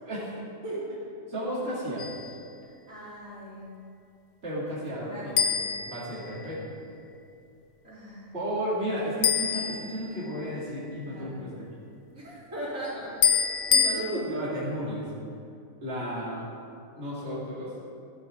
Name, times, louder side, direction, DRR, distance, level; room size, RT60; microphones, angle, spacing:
voice 1, 0.1-0.4 1.3-2.1 4.4-5.4 5.8-6.8 8.3-11.7 13.9-15.1 15.8-16.5 16.9-17.7, equal, 50° right, -8 dB, 2.6 m, -33 dB
voice 2, 0.6-0.9 2.6-3.7 4.9-5.7 7.8-8.4 11.1-11.3 12.1-14.3, right 1 dB, 85° right, -9 dB, 3.8 m, -38 dB
sound 1, 2.0-2.4 5.4-6.7 9.2-10.5 13.2-14.0, left 7 dB, 55° left, 0.7 m, -26 dB
13.0 x 11.5 x 3.7 m, 2.5 s
omnidirectional pair, 1.4 m